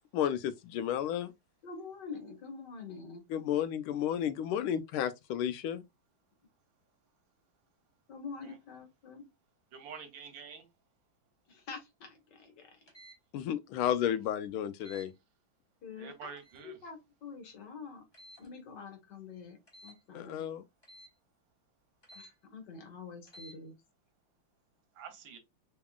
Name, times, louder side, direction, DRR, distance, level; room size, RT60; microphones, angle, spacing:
voice 1, 0.1-1.3 3.3-5.8 13.3-15.1 20.1-20.6, left 10 dB, 85° left, 1.4 m, -32 dB
voice 2, 1.6-3.2 8.1-9.3 11.5-12.8 15.8-18.0 18.4-20.4 22.1-23.7, left 5 dB, 60° left, 1.7 m, -46 dB
voice 3, 9.7-10.7 14.0-14.2 16.0-16.8 24.9-25.4, right 6 dB, 70° right, 1.6 m, -47 dB
sound 1, 12.9-13.2 14.8-15.1 16.4-16.7 18.1-18.5 19.7-20.0 20.8-21.1 22.0-22.3 23.2-23.6, equal, 15° left, 0.8 m, -53 dB
3.8 x 3.6 x 2.3 m
omnidirectional pair, 2.2 m